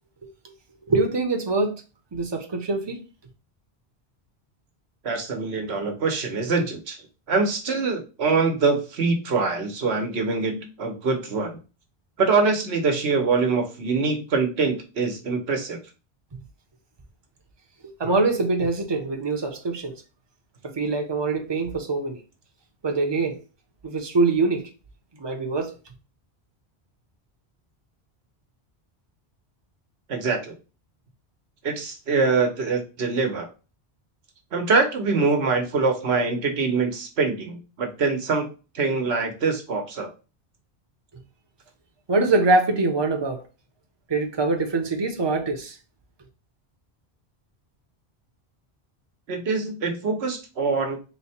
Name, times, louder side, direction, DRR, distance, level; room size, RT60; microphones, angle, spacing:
voice 1, 0.9-1.8 2.1-3.0 17.8-19.9 20.6-22.2 22.8-23.4 23.8-24.7 25.2-25.7 42.1-43.4 44.1-45.8, right 3 dB, 30° right, 0.7 m, -24 dB
voice 2, 5.0-7.0 7.3-11.6 12.2-15.8 30.1-30.5 31.6-33.5 34.5-38.5 38.7-40.1 49.3-51.0, right 4 dB, 80° right, 1.2 m, -24 dB
4.1 x 2.2 x 4.2 m
omnidirectional pair, 1.1 m